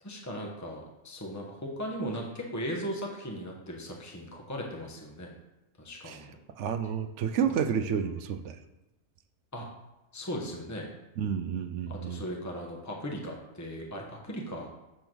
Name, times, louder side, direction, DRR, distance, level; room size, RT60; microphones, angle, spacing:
voice 1, 0.0-5.3 5.8-6.3 7.5-7.6 9.5-9.7 10.1-10.9 11.9-14.7, equal, 15° left, -1 dB, 1.0 m, -37 dB
voice 2, 6.5-8.6 11.2-12.2, right 7 dB, 70° right, 9 dB, 0.8 m, -30 dB
7.7 x 3.5 x 6.1 m, 1.0 s
omnidirectional pair, 1.4 m